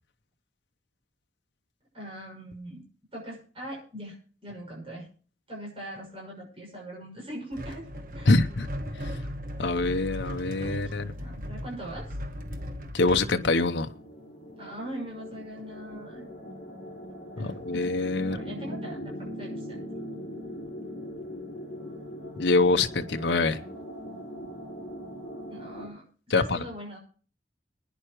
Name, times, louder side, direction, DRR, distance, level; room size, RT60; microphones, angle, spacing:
voice 1, 1.9-2.8 3.1-4.1 4.4-5.1 5.5-7.9 8.1-8.4 10.7-12.2 14.6-16.3 17.3-17.9 18.3-19.8 25.5-27.0, right 1 dB, 30° right, -2 dB, 6.3 m, -41 dB
sound 1, 7.5-13.3, equal, 50° right, 1.3 m, -37 dB
voice 2, 8.3-8.7 9.6-11.1 12.9-13.9 17.4-18.4 22.4-23.6 26.3-26.6, left 3 dB, 80° left, 7 dB, 0.8 m, -24 dB
sound 2, 12.4-12.5 12.8-25.9, equal, 35° left, 7.8 m, -41 dB
23.5 x 10.0 x 3.1 m, 0.41 s
head